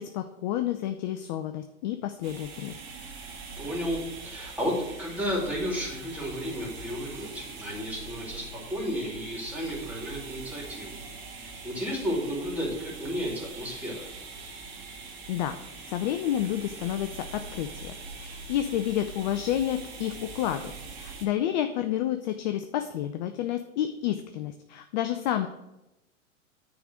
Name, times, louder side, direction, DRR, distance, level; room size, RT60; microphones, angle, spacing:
voice 1, 0.0-2.7 15.3-15.6 15.9-20.7 21.0-25.5, left 11 dB, 35° left, 8 dB, 0.4 m, -30 dB
sound 1, 2.2-21.3, right 4 dB, 30° right, 1.6 m, -43 dB
voice 2, 3.6-10.9 11.3-14.1, equal, 5° right, -3 dB, 2.7 m, -33 dB
9.4 x 3.7 x 6.2 m, 0.93 s
hypercardioid pair, 115°, 42 cm